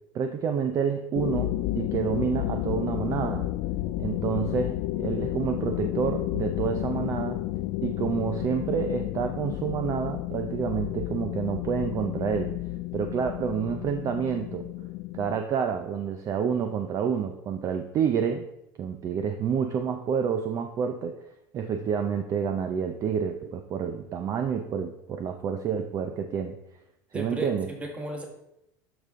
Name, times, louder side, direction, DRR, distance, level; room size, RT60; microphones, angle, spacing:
voice 1, 0.1-3.5 4.0-7.4 7.8-12.5 12.9-14.7 15.1-18.5 18.8-21.2 21.5-26.6 27.1-27.7, right 7 dB, 30° right, 6 dB, 0.5 m, -28 dB
sound 1, 1.1-15.4, left 16 dB, 60° left, 0.4 m, -31 dB
voice 2, 27.1-28.3, right 2 dB, 10° right, 2 dB, 1.5 m, -35 dB
12.5 x 5.2 x 3.7 m, 0.84 s
supercardioid pair, 150°, 10 cm